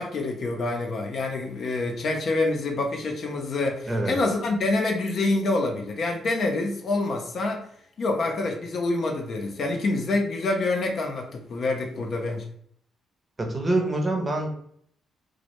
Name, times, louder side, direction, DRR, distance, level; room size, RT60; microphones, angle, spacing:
voice 1, 0.0-7.6 8.0-12.4, left 2 dB, 60° left, 2 dB, 0.5 m, -26 dB
voice 2, 3.9-4.2 13.4-14.5, right 2 dB, 30° right, 2 dB, 0.6 m, -25 dB
2.1 x 2.1 x 2.9 m, 0.65 s
supercardioid pair, 50°, 0 cm